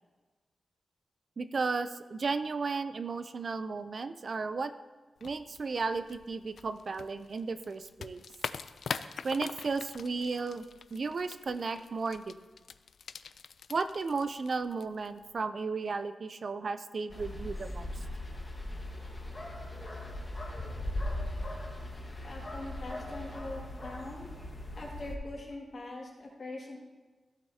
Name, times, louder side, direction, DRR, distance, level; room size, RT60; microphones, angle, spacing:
voice 1, 1.4-4.7 5.2-8.2 9.2-10.6 10.9-12.3 13.7-18.0, right 4 dB, 45° right, 11 dB, 0.4 m, -34 dB
sound 1, 5.2-15.4, left 6 dB, 70° left, 0.3 m, -44 dB
sound 2, 17.1-25.2, left 1 dB, 25° left, 1.3 m, -39 dB
voice 2, 22.2-24.3 24.7-26.8, left 2 dB, 50° left, -2 dB, 2.2 m, -42 dB
14.5 x 8.2 x 2.8 m, 1.3 s
wide cardioid pair, 150°, 0 cm